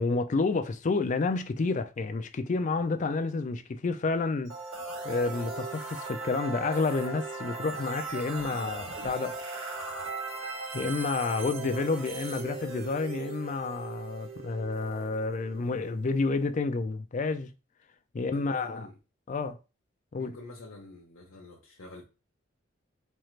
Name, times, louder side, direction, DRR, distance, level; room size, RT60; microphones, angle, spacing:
voice 1, 0.0-4.5 5.0-9.4 10.7-17.5 18.1-18.9 19.3-19.6 20.1-20.4, left 3 dB, 35° left, 0.4 m, -30 dB
sound 1, 4.5-16.3, right 3 dB, 80° right, 2.3 m, -38 dB
voice 2, 18.1-19.0 20.2-22.0, left 2 dB, 80° left, 0.8 m, -47 dB
4.4 x 2.4 x 3.1 m
head